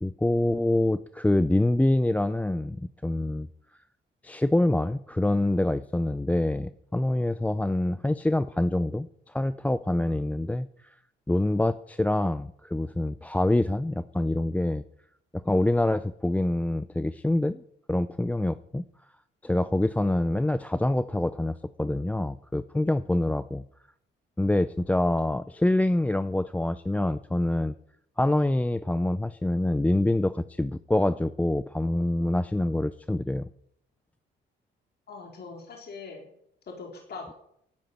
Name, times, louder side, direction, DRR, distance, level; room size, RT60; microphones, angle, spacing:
voice 1, 0.0-3.5 4.2-10.7 11.3-14.8 15.3-17.6 17.9-18.9 19.4-23.6 24.4-27.7 28.2-33.5, left 1 dB, 5° left, 14 dB, 0.5 m, -26 dB
voice 2, 35.1-36.3 36.7-37.3, left 4 dB, 55° left, 1 dB, 4.1 m, -41 dB
12.0 x 9.7 x 9.4 m, 0.72 s
cardioid pair, 90°, 20 cm